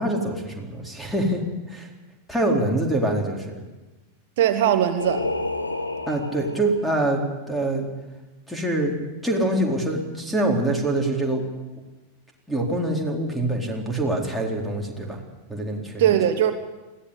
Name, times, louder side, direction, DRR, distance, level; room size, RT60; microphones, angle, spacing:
voice 1, 0.0-1.4 1.7-1.9 2.3-3.6 6.1-7.2 7.5-7.9 8.5-8.9 9.2-11.4 12.5-15.2 15.5-16.1, right 1 dB, ahead, 1 dB, 4.3 m, -25 dB
voice 2, 4.4-5.3 16.0-16.5, right 10 dB, 55° right, 8 dB, 1.3 m, -20 dB
Singing, 5.0-7.0, left 2 dB, 85° left, 1.6 m, -30 dB
21.5 x 16.0 x 8.5 m, 1.1 s
figure-of-eight pair, 90°, 0 cm